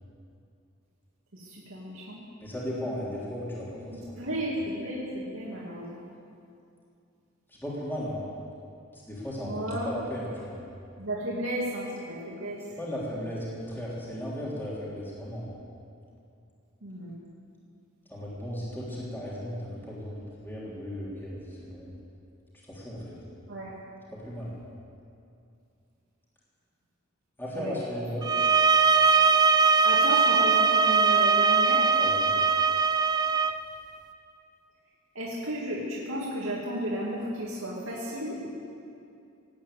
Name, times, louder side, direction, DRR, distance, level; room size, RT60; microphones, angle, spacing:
voice 1, 1.3-2.2 4.2-6.1 9.4-9.9 11.0-12.6 16.8-17.1 23.5-23.7 27.5-27.7 28.2-28.3 29.2-29.3 29.8-31.9 35.1-38.5, right 1 dB, 90° right, -6 dB, 2.6 m, -33 dB
voice 2, 2.4-4.1 7.5-8.2 8.9-10.7 12.8-15.5 18.1-21.9 22.7-23.2 24.1-24.6 27.4-28.2 31.9-32.3, equal, 10° left, -7 dB, 3.4 m, -36 dB
sound 1, 28.2-33.6, right 5 dB, 20° right, 0.5 m, -21 dB
19.0 x 9.0 x 8.4 m, 2.5 s
head